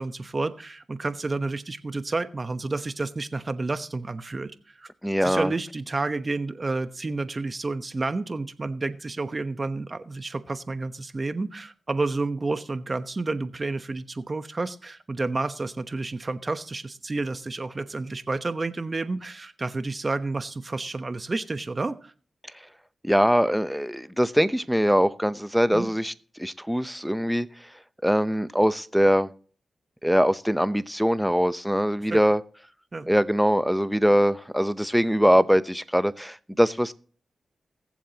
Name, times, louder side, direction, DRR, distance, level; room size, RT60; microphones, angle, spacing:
voice 1, 0.0-4.5 4.8-4.9 5.2-22.1 25.7-25.9 32.1-32.2 32.9-33.1, right 3 dB, 40° right, 1.0 m, -30 dB
voice 2, 5.0-5.5 23.0-27.5 28.0-29.3 30.0-32.4 33.1-36.9, equal, ahead, 0.7 m, -22 dB
20.0 x 7.4 x 2.9 m
cardioid pair, 55°, 0 cm